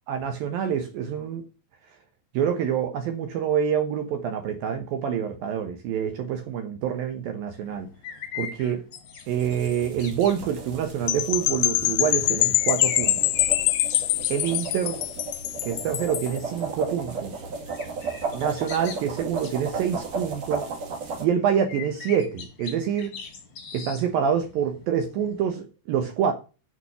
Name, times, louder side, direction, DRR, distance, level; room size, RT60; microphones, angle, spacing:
voice 1, 0.1-1.4 2.3-7.9 8.4-8.8 9.3-13.3 14.3-15.0 15.6-17.4 18.3-20.7 21.2-23.2 23.7-26.3, right 8 dB, 70° right, 7 dB, 2.3 m, -26 dB
sound 1, 7.6-25.6, left 6 dB, 45° left, 2.0 m, -42 dB
sound 2, 9.3-21.3, right 4 dB, 45° right, 2.7 m, -35 dB
sound 3, 11.1-16.4, left 18 dB, 80° left, 2.7 m, -24 dB
9.4 x 5.9 x 6.8 m, 0.33 s
omnidirectional pair, 5.0 m